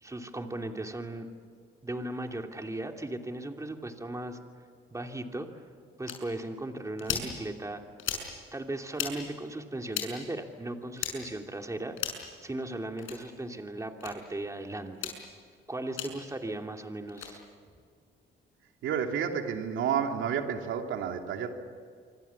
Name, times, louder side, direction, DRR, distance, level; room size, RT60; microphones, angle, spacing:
voice 1, 0.0-1.3 1.8-4.4 4.9-5.6 6.0-7.8 8.5-12.0 12.4-15.1 15.7-17.4, right 1 dB, 15° right, 3 dB, 2.9 m, -37 dB
sound 1, 6.1-6.2 7.0-7.3 8.0-8.3 8.9-9.1 9.9-10.1 11.0-11.1 12.0-12.3 13.0-13.2 14.0-14.1 14.9-15.2 16.0-16.1 17.1-17.3, left 9 dB, 80° left, 6.2 m, -34 dB
voice 2, 18.8-21.5, right 7 dB, 85° right, 4 dB, 2.8 m, -30 dB
27.5 x 25.0 x 7.2 m, 2.1 s
cardioid pair, 90°, 20 cm